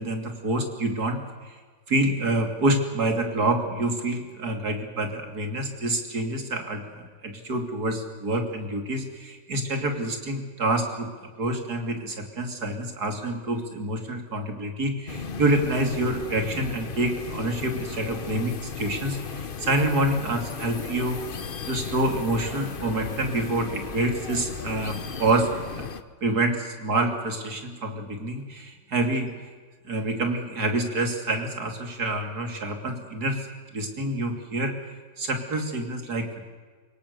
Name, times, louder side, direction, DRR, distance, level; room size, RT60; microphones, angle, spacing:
voice 1, 0.0-1.5 1.9-21.2 21.6-25.5 25.8-25.9 26.2-29.3 29.8-33.5 33.7-34.7 35.2-36.4, right 2 dB, 60° right, 5 dB, 3.4 m, -27 dB
sound 1, 15.1-26.0, left 6 dB, 35° left, 1.0 m, -36 dB
25.5 x 22.5 x 7.0 m, 1.5 s
omnidirectional pair, 1.9 m